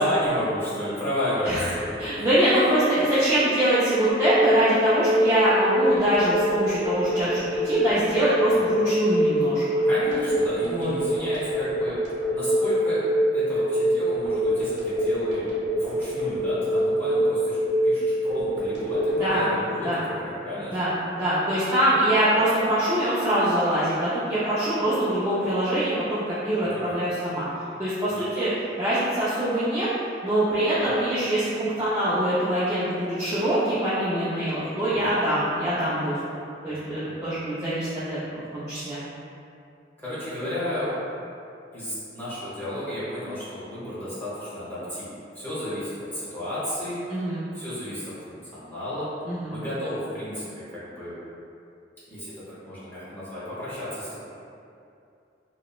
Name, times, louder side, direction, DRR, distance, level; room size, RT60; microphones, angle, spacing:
voice 1, 0.0-2.3 2.5-2.6 8.5-8.8 9.8-12.0 12.3-13.0 13.3-15.4 15.7-17.6 17.8-20.9 26.6-27.0 28.0-28.2 30.8-31.0 34.9-35.2 36.6-37.4 40.0-40.9 41.7-47.0 47.5-49.1 49.5-51.2 52.1-54.1, left 1 dB, 10° left, -12 dB, 0.8 m, -32 dB
voice 2, 2.0-9.8 10.7-11.0 19.2-19.4 19.8-20.0 20.7-27.5 27.8-28.5 28.8-29.9 30.2-36.2 36.6-39.0 47.1-47.5 49.3-49.6, right 1 dB, 15° right, -13 dB, 0.4 m, -24 dB
Telephone, 4.1-19.4, equal, 45° right, 0.8 m, -24 dB
2.9 x 2.0 x 2.3 m, 2.6 s
head